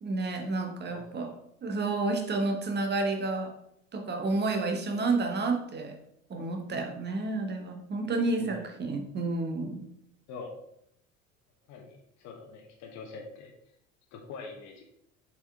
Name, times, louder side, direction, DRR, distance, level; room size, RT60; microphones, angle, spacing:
voice 1, 0.0-1.3 1.6-3.5 3.9-6.0 6.3-9.9, right 3 dB, 25° right, 4 dB, 1.2 m, -30 dB
voice 2, 0.9-1.4 8.4-8.7 10.3-10.5 11.7-13.5 14.1-14.8, left 4 dB, 45° left, 2 dB, 1.2 m, -44 dB
7.0 x 4.6 x 3.6 m, 0.75 s
figure-of-eight pair, 65°, 40 cm